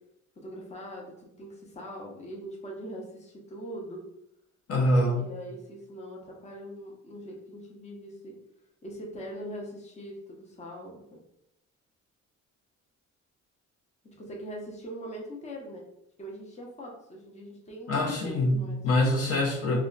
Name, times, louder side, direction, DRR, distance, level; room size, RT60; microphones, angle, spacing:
voice 1, 0.4-4.0 5.2-8.4 8.8-11.2 14.0-15.8 16.2-18.8, equal, 25° left, -1 dB, 0.7 m, -42 dB
voice 2, 4.7-5.2 17.9-19.8, left 1 dB, 55° left, -1 dB, 0.8 m, -25 dB
2.2 x 2.0 x 3.8 m, 0.79 s
cardioid pair, 90°, 30 cm